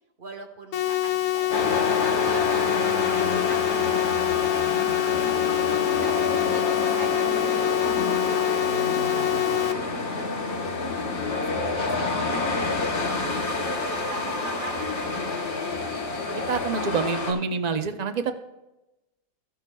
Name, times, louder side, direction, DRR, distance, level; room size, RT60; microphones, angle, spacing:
voice 1, 0.2-1.5 1.9-3.6 4.0-5.6 5.9-7.7 8.2-8.7 9.1-9.7 11.4-15.4 16.9-17.4, right 2 dB, 40° right, 3 dB, 1.1 m, -43 dB
sound 1, 0.7-9.7, left 13 dB, 80° left, 1.2 m, -25 dB
sound 2, 1.5-17.3, left 3 dB, 50° left, 1.6 m, -28 dB
voice 2, 16.5-18.3, right 5 dB, 75° right, 8 dB, 0.3 m, -26 dB
13.5 x 11.0 x 2.2 m, 0.97 s
omnidirectional pair, 1.5 m